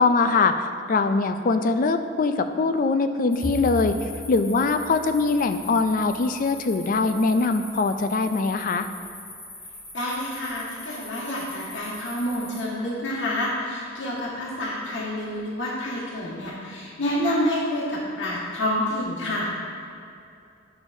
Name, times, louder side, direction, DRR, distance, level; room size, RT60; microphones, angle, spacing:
voice 1, 0.0-4.0 4.3-8.9, left 3 dB, 45° left, 9 dB, 0.3 m, -22 dB
sound 1, 3.3-12.6, left 2 dB, 25° left, 1.7 m, -42 dB
Bowed string instrument, 3.4-6.9, left 1 dB, 5° left, 0.7 m, -37 dB
voice 2, 9.9-19.5, left 1 dB, 75° left, -6 dB, 1.5 m, -28 dB
9.7 x 6.2 x 2.7 m, 2.6 s
head